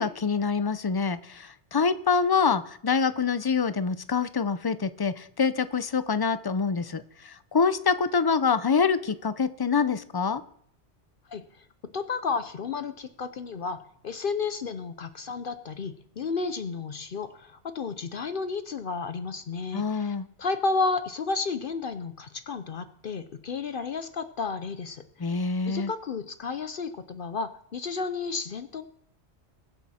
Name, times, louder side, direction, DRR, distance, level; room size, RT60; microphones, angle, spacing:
voice 1, 0.0-10.4 19.7-20.3 25.2-25.9, left 5 dB, 30° left, 13 dB, 0.4 m, -26 dB
voice 2, 11.3-11.6 11.9-25.3 25.6-28.8, left 4 dB, 55° left, 11 dB, 0.8 m, -32 dB
21.5 x 7.9 x 4.3 m, 0.66 s
omnidirectional pair, 1.1 m